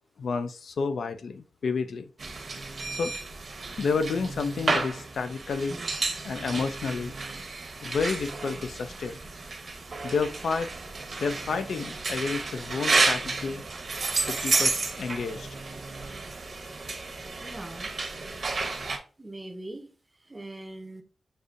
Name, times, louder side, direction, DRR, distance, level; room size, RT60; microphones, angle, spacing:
voice 1, 0.2-2.1 2.9-3.1 3.8-5.8 6.2-7.1 7.8-9.2 10.0-10.7 11.2-13.6 14.3-15.5, left 5 dB, 75° left, 0.4 m, -30 dB
sound 1, 2.2-19.0, right 3 dB, 50° right, 0.8 m, -31 dB
voice 2, 17.4-17.9 19.2-20.0 20.2-21.0, right 1 dB, 20° right, 0.6 m, -41 dB
6.5 x 2.7 x 2.4 m
wide cardioid pair, 125°, 0 cm